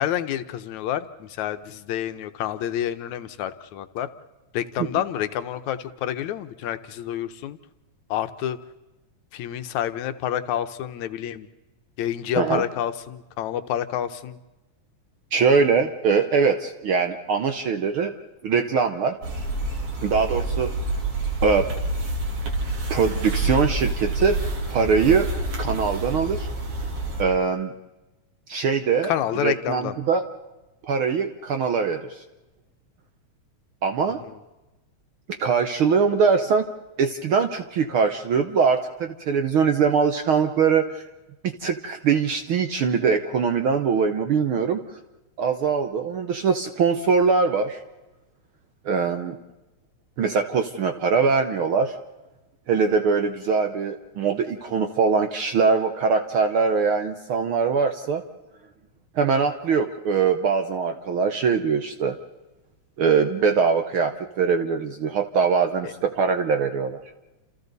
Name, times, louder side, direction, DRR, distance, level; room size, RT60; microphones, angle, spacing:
voice 1, 0.0-4.1 4.5-7.6 8.1-8.6 9.3-11.5 12.0-14.4 29.1-30.0 34.2-34.3 65.8-65.9, left 11 dB, 80° left, 10 dB, 2.2 m, -28 dB
voice 2, 15.3-18.1 18.4-19.1 20.0-20.7 21.4-21.7 22.9-24.4 24.7-25.3 25.6-26.5 27.2-27.7 28.5-29.1 29.4-30.2 30.8-32.2 33.8-34.2 35.4-36.7 37.0-41.0 41.4-44.8 45.4-47.8 48.8-49.4 50.2-51.9 52.7-58.2 59.1-62.1 63.0-67.0, right 5 dB, 65° right, 7 dB, 1.4 m, -22 dB
sound 1, 19.2-27.2, right 2 dB, 90° right, 4.8 m, -27 dB
30.0 x 28.0 x 4.1 m, 1.1 s
omnidirectional pair, 3.3 m